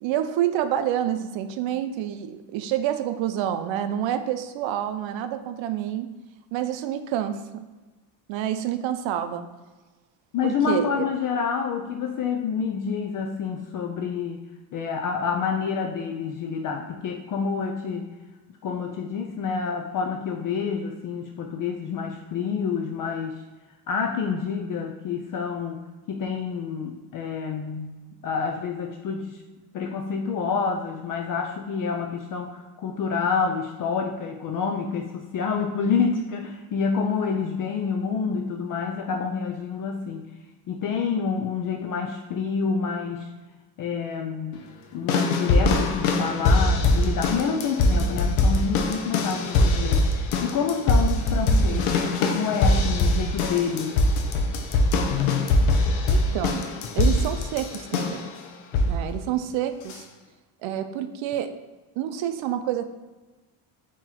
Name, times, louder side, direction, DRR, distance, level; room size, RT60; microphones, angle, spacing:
voice 1, 0.0-6.1 6.5-7.7 8.3-9.5 10.4-11.1 56.1-56.7 56.9-58.3 58.9-60.0 60.6-61.5 62.0-62.9, right 11 dB, 70° right, 9 dB, 0.6 m, -28 dB
voice 2, 10.3-14.4 14.7-18.1 18.6-23.4 23.9-25.8 26.1-28.0 28.2-29.4 29.7-40.2 40.7-43.3 43.8-44.6 44.9-50.1 50.4-54.0, left 6 dB, 45° left, 2 dB, 0.4 m, -28 dB
sound 1, 45.1-58.3 58.7-59.1 59.9-60.0, left 2 dB, 80° left, 0.7 m, -22 dB
3.9 x 3.0 x 4.2 m, 1.2 s
cardioid pair, 130°, 48 cm